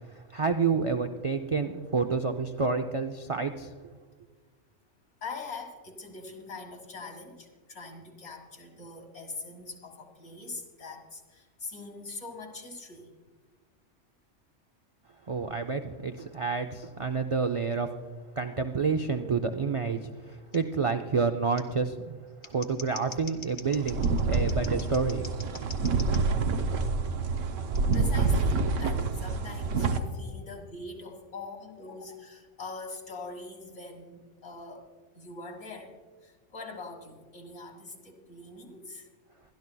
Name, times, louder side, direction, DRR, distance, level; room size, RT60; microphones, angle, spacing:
voice 1, 0.3-3.7 15.3-17.9 18.4-25.3, right 5 dB, 60° right, 5 dB, 0.3 m, -29 dB
voice 2, 5.2-13.2 27.9-34.9 35.1-35.9 36.2-39.1, left 3 dB, 70° left, 2 dB, 2.0 m, -43 dB
Scissors, 20.5-20.6 21.6-21.7 22.3-26.2 27.7-28.0, left 5 dB, 50° left, 1.2 m, -45 dB
sound 1, 23.7-30.0, right 4 dB, 90° right, 1.1 m, -27 dB
22.5 x 12.0 x 2.3 m, 1.4 s
omnidirectional pair, 1.3 m